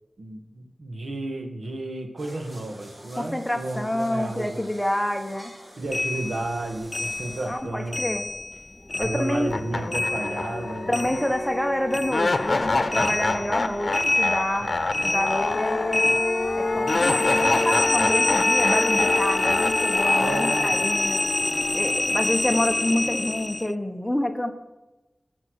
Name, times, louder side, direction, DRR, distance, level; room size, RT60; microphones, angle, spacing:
voice 1, 0.2-4.6 5.8-8.2 9.0-11.1 14.6-14.9 16.7-16.8 20.2-20.7, right 2 dB, 80° right, 4 dB, 2.0 m, -32 dB
sound 1, 2.2-7.5, equal, 30° right, 6.0 m, -47 dB
voice 2, 3.2-5.5 7.4-8.3 9.0-9.5 10.9-14.7 15.0-16.1 16.5-21.2 21.7-24.5, left 1 dB, 5° left, 6 dB, 1.4 m, -28 dB
sound 2, 5.9-8.6 8.9-11.6 11.9-23.7, left 2 dB, 30° left, 0.4 m, -27 dB
sound 3, 9.0-9.1 9.5-22.6, left 3 dB, 55° left, 1.1 m, -26 dB
20.0 x 7.4 x 6.5 m, 1.1 s
wide cardioid pair, 80°, 0 cm